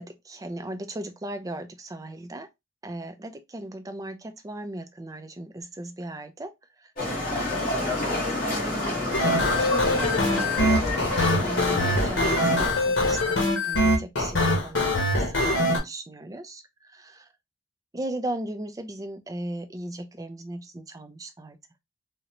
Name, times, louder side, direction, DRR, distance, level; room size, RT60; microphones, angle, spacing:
voice 1, 0.0-2.5 2.8-6.5 7.0-9.0 9.3-10.7 11.4-12.5 12.8-16.6 16.9-17.2 17.9-21.6, right 1 dB, 20° right, 0.4 m, -37 dB
Livestock farm animals working animals, 7.0-12.7, left 2 dB, 50° left, 1.5 m, -28 dB
sound 1, 9.1-15.8, left 1 dB, 80° left, 1.2 m, -23 dB
3.8 x 2.1 x 2.9 m
head